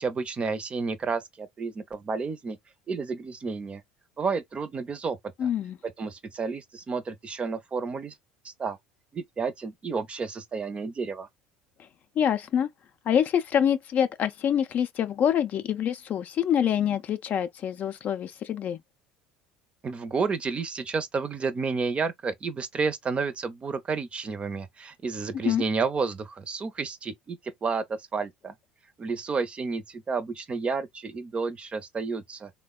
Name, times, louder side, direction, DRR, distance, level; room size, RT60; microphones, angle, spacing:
voice 1, 0.0-2.6 2.9-3.8 4.2-5.5 5.8-8.1 8.4-8.8 9.1-11.3 19.8-28.5 29.0-32.5, right 4 dB, 30° right, 0.6 m, -31 dB
voice 2, 5.4-5.8 12.2-12.7 13.1-18.8 25.4-25.6, left 9 dB, 45° left, 0.4 m, -26 dB
3.4 x 2.1 x 2.3 m
hypercardioid pair, 75°, 4 cm